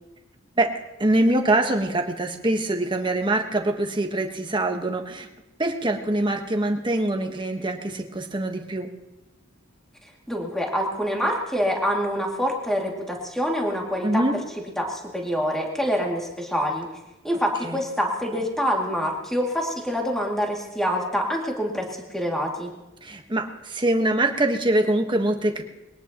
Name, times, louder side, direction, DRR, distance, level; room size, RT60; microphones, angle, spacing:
voice 1, 1.0-5.3 5.6-8.9 14.0-14.4 17.6-17.8 23.0-25.6, right 1 dB, 25° right, 4 dB, 1.4 m, -24 dB
voice 2, 10.3-14.2 14.8-16.9 17.2-22.7, equal, ahead, -1 dB, 2.5 m, -26 dB
22.0 x 18.0 x 3.0 m, 1.0 s
head